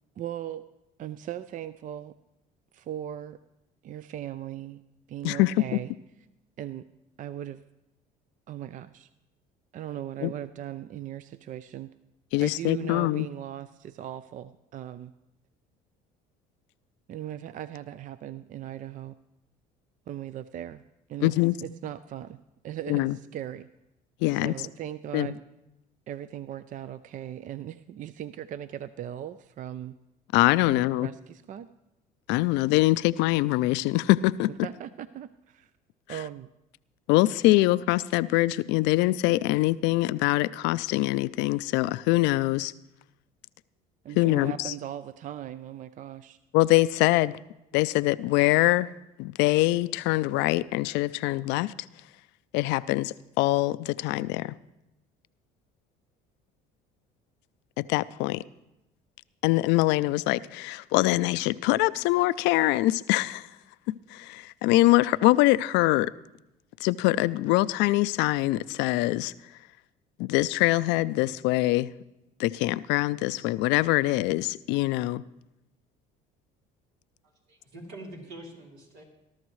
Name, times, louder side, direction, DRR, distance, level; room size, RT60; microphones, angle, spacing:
voice 1, 0.2-0.6 1.0-2.2 2.7-3.4 3.8-4.8 5.1-5.9 6.6-6.9 7.2-7.6 8.5-9.1 9.7-11.9 12.4-15.1 17.1-19.2 20.1-20.8 21.1-21.3 21.6-23.7 24.4-25.4 26.1-30.0 30.6-31.7 34.5-35.7 36.1-36.5 44.0-46.4, right 11 dB, 45° right, 0.4 m, -38 dB
voice 2, 12.3-13.3 21.2-21.5 22.9-23.2 24.2-24.5 25.1-25.3 30.3-31.1 32.3-34.5 37.1-42.7 44.2-44.7 46.5-47.4 47.7-48.9 49.2-51.7 52.5-54.6 57.8-58.4 59.4-63.5 63.9-66.1 66.8-69.3 70.2-71.9 72.4-75.2, left 18 dB, 80° left, 0.4 m, -24 dB
voice 3, 77.2-79.0, right 1 dB, 85° right, 3.6 m, -45 dB
20.5 x 12.0 x 3.1 m
supercardioid pair, 85°, 18 cm